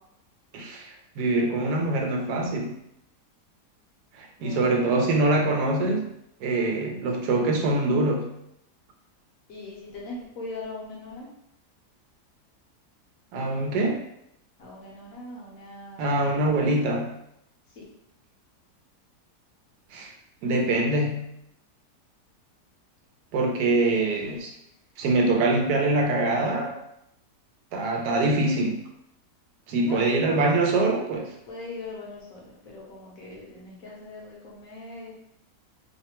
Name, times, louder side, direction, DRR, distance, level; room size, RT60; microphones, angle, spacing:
voice 1, 0.5-2.7 4.1-6.1 6.4-8.3 13.3-14.0 16.0-17.1 19.9-20.1 20.4-21.3 23.3-24.5 25.0-26.8 27.7-28.8 29.7-31.3, right 2 dB, 90° right, 1 dB, 1.2 m, -24 dB
voice 2, 4.4-5.2 9.5-11.3 14.6-17.0 17.8-17.9 23.9-24.4 29.8-30.5 31.5-35.1, left 2 dB, 65° left, -4 dB, 1.1 m, -40 dB
3.2 x 2.1 x 2.9 m, 0.77 s
omnidirectional pair, 1.8 m